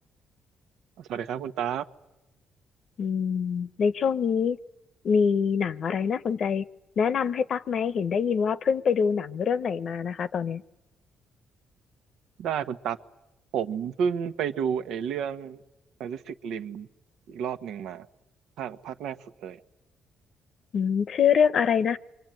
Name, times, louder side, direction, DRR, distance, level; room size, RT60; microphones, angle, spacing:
voice 1, 1.0-1.8 12.4-13.0 13.5-15.6 16.0-16.9 17.3-18.1 18.6-19.6, right 8 dB, 85° right, 10 dB, 1.1 m, -31 dB
voice 2, 3.0-4.6 5.0-6.7 7.0-10.6 20.7-22.0, left 6 dB, 60° left, 15 dB, 0.9 m, -25 dB
28.0 x 23.5 x 9.1 m, 0.96 s
cardioid pair, 90°, 0 cm